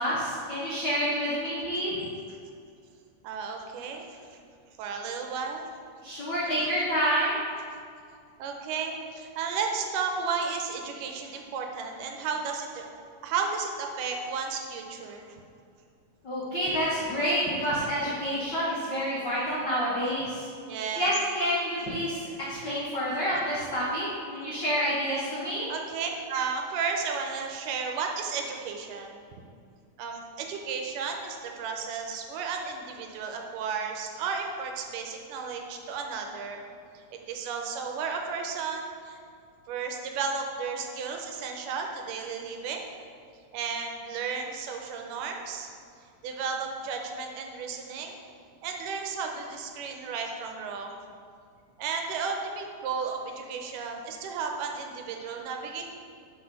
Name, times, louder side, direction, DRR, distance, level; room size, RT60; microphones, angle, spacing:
voice 1, 0.0-1.9 6.0-7.4 16.2-20.5 21.0-24.1 24.3-25.7, equal, 80° left, -8 dB, 0.9 m, -28 dB
voice 2, 3.2-4.2 4.8-5.6 6.1-6.2 6.5-6.7 8.4-12.9 13.2-15.2 17.6-17.7 20.7-21.1 25.7-29.2 30.0-36.6 36.9-39.2 39.7-42.9 43.5-45.7 46.2-48.2 48.6-51.0 51.8-55.8, right 5 dB, 90° right, 3 dB, 2.2 m, -33 dB
6.1 x 5.1 x 5.3 m, 2.3 s
omnidirectional pair, 3.8 m